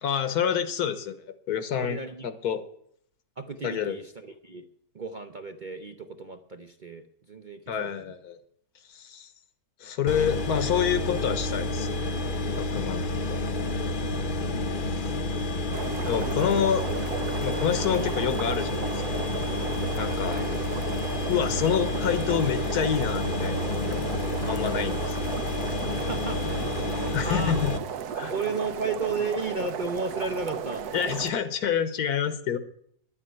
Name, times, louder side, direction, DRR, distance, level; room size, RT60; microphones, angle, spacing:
voice 1, 0.0-1.2 1.5-2.0 2.2-2.6 3.6-4.0 7.7-8.4 8.9-9.3 9.8-11.9 12.6-13.0 13.3-13.4 14.8-14.9 16.1-16.9 17.4-19.3 20.0-20.4 21.3-24.0 24.3-25.2 27.0-27.7 28.1-28.3 30.9-32.6, left 8 dB, 75° left, 11 dB, 1.5 m, -27 dB
voice 2, 1.8-2.3 3.4-4.7 4.9-7.9 20.3-20.5 25.9-26.6 26.9-27.6 28.3-30.9, right 4 dB, 45° right, 7 dB, 0.6 m, -34 dB
sound 1, 10.1-27.8, left 2 dB, 40° left, 0.9 m, -29 dB
sound 2, 15.7-31.3, right 7 dB, 75° right, 1.3 m, -35 dB
11.0 x 8.6 x 9.2 m, 0.67 s
omnidirectional pair, 1.7 m